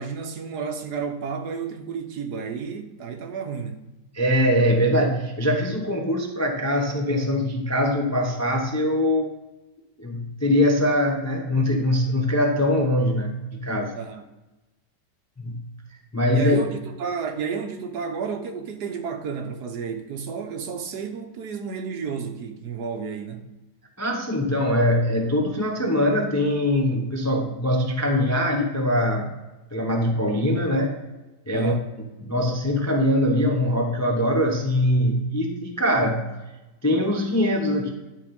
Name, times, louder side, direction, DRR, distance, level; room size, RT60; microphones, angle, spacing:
voice 1, 0.0-3.8 14.0-14.2 16.3-23.5 31.5-31.9, right 5 dB, 70° right, 1.4 m, -31 dB
voice 2, 4.1-9.4 10.0-13.9 15.4-15.6 16.1-16.6 24.0-29.3 29.7-31.0 31.5-31.7 32.2-36.3 36.8-37.9, left 1 dB, 20° left, 0.4 m, -22 dB
10.5 x 3.9 x 5.2 m
omnidirectional pair, 1.8 m